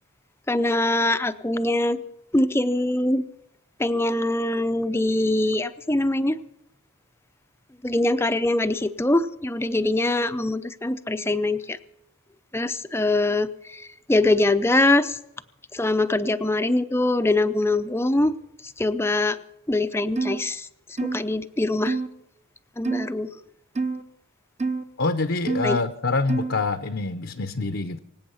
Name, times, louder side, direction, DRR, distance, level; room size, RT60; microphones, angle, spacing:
voice 1, 0.5-2.0 2.3-3.3 3.8-6.4 7.8-11.8 12.5-15.2 15.7-18.4 18.6-19.4 19.7-20.7 21.0-22.0 22.8-23.3 25.6-25.8, left 2 dB, 10° left, 10 dB, 0.5 m, -23 dB
sound 1, 20.2-20.4 21.0-21.2 21.9-22.1 22.8-23.1 23.8-24.0 24.6-24.8 25.5-25.7 26.3-26.6, right 3 dB, 30° right, 0.8 m, -26 dB
voice 2, 25.0-28.0, left 3 dB, 55° left, 8 dB, 0.7 m, -25 dB
24.5 x 8.7 x 5.7 m, 0.83 s
head